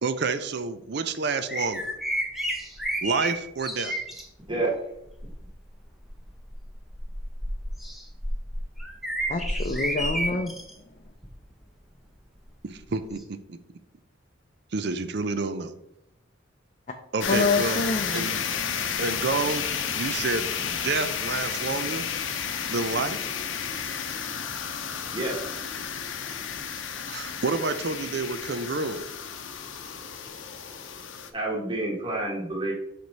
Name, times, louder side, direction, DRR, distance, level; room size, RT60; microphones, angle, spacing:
voice 1, 0.0-1.9 3.0-4.0 12.6-13.6 14.7-15.8 17.1-18.4 19.0-19.6 20.0-22.1 22.7-23.2 27.1-29.0, right 3 dB, 60° right, 10 dB, 0.5 m, -29 dB
sound 1, 1.5-4.2 5.1-5.4 6.0-10.7 11.2-11.4 13.2-13.3, right 1 dB, ahead, 0.8 m, -31 dB
voice 2, 9.3-10.5 16.9-17.0 17.3-18.3, left 3 dB, 40° left, 4 dB, 0.5 m, -26 dB
sound 2, 17.2-31.3, left 7 dB, 80° left, 0.7 m, -32 dB
voice 3, 31.3-32.7, right 2 dB, 25° right, -3 dB, 1.5 m, -28 dB
6.0 x 4.9 x 4.0 m, 0.79 s
head